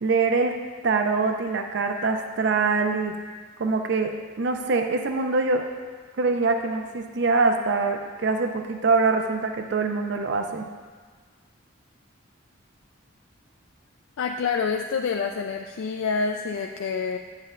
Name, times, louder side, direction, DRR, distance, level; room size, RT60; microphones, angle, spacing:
voice 1, 0.0-0.6 0.8-3.2 3.6-5.7 6.2-10.7, right 4 dB, 55° right, 5 dB, 0.4 m, -24 dB
voice 2, 14.2-17.2, left 5 dB, 70° left, 3 dB, 0.3 m, -27 dB
10.0 x 7.4 x 2.5 m, 1.5 s
head